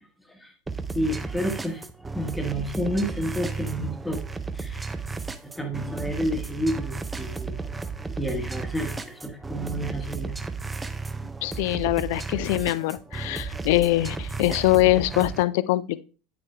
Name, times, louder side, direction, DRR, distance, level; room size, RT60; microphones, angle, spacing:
sound 1, 0.7-15.4, right 4 dB, 15° right, 0.5 m, -34 dB
voice 1, 0.9-1.8 2.1-4.2 4.5-4.9 5.4-7.6 8.2-10.4, equal, 5° left, 4 dB, 1.2 m, -30 dB
voice 2, 11.4-16.0, left 17 dB, 55° left, 17 dB, 0.4 m, -23 dB
9.2 x 8.5 x 2.3 m, 0.35 s
figure-of-eight pair, 75°, 0 cm